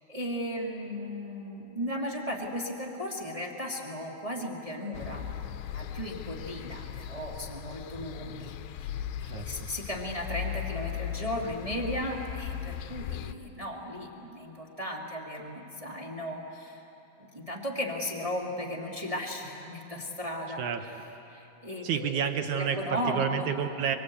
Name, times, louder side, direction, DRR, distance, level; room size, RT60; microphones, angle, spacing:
voice 1, 0.1-5.3 5.7-16.8 17.2-20.6 21.3-22.2 22.6-23.5, equal, 25° right, -2 dB, 0.8 m, -36 dB
sound 1, 4.9-13.3, left 10 dB, 80° left, 2.5 m, -38 dB
voice 2, 9.2-9.7 20.6-20.8 21.8-24.0, right 7 dB, 70° right, 7 dB, 1.9 m, -30 dB
24.0 x 24.0 x 8.5 m, 3.0 s
omnidirectional pair, 4.6 m